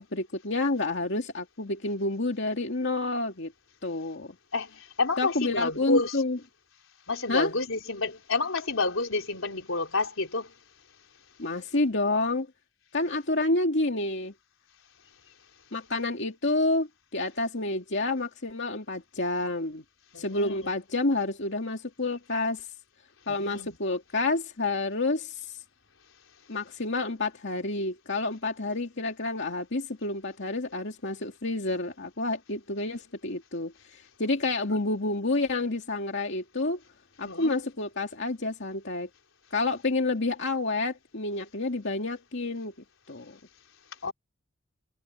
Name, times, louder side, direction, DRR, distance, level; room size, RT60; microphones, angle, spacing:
voice 1, 0.0-3.5 3.8-4.4 5.2-6.4 7.3-7.5 11.4-12.5 12.9-14.3 15.7-19.8 20.1-22.7 23.3-25.6 26.5-36.8 37.2-39.1 39.5-42.7 43.1-43.4, left 2 dB, 60° left, 2.5 m, -29 dB
voice 2, 4.5-6.1 7.1-10.5 20.1-20.7 23.3-23.7 37.2-37.5 44.0-44.1, left 3 dB, 80° left, 4.1 m, -29 dB
head